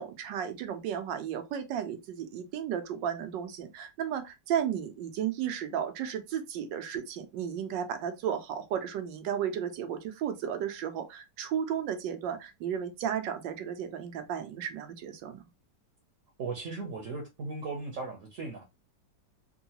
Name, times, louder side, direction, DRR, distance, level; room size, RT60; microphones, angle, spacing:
voice 1, 0.0-15.5, right 9 dB, 85° right, 1.3 m, -34 dB
voice 2, 16.4-18.6, right 3 dB, 55° right, 1.0 m, -37 dB
3.7 x 2.3 x 2.8 m
omnidirectional pair, 1.9 m